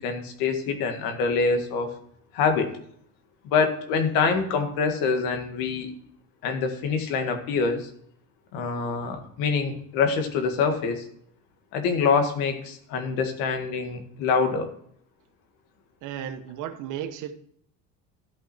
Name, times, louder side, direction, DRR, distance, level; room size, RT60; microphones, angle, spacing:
voice 1, 0.0-1.9 2.3-2.7 3.4-5.9 6.4-7.9 8.5-11.1 11.7-14.7, left 5 dB, 80° left, 6 dB, 1.9 m, -25 dB
voice 2, 16.0-17.3, right 10 dB, 65° right, 8 dB, 1.2 m, -34 dB
13.0 x 5.8 x 4.2 m, 0.65 s
cardioid pair, 140°, 34 cm